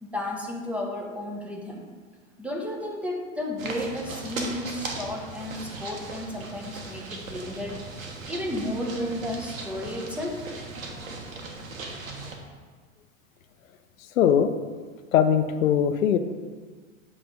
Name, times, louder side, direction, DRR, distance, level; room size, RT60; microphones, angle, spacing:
voice 1, 0.0-1.9 2.4-7.8 8.3-10.4, left 1 dB, 5° right, -1 dB, 1.1 m, -33 dB
sound 1, 3.6-12.3, right 3 dB, 85° right, 1.3 m, -38 dB
voice 2, 14.2-14.5 15.1-16.2, left 8 dB, 80° left, 9 dB, 0.6 m, -20 dB
7.9 x 3.3 x 5.2 m, 1.5 s
hypercardioid pair, 100°, 40 cm